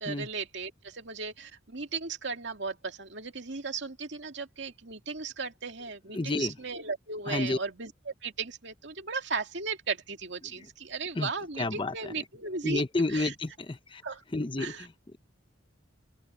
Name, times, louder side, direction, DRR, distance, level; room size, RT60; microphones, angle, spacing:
voice 1, 0.0-12.8 13.1-13.3 14.0-14.2 14.6-14.8, right 4 dB, 60° right, 2.4 m, -36 dB
voice 2, 6.1-6.5 7.3-7.6 10.4-10.7 11.1-11.3 11.6-12.1 12.6-14.0 14.3-15.2, left 2 dB, 25° left, 0.7 m, -31 dB
open air
head